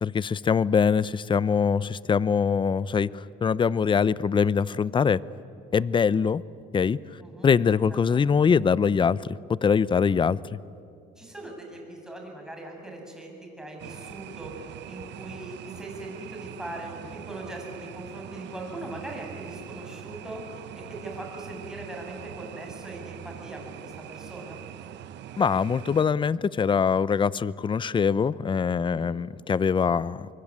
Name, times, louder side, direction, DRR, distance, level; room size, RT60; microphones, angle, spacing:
voice 1, 0.0-5.2 5.7-6.4 6.7-7.0 7.4-10.4 25.4-30.3, left 6 dB, 25° left, 0.6 m, -23 dB
voice 2, 7.9-8.2 11.2-14.5 14.9-20.4 20.7-24.6 28.8-29.1, right 1 dB, 5° right, 7.6 m, -40 dB
sound 1, 13.8-26.0, right 11 dB, 70° right, 1.1 m, -43 dB
24.5 x 23.5 x 9.8 m
cardioid pair, 105°, 19 cm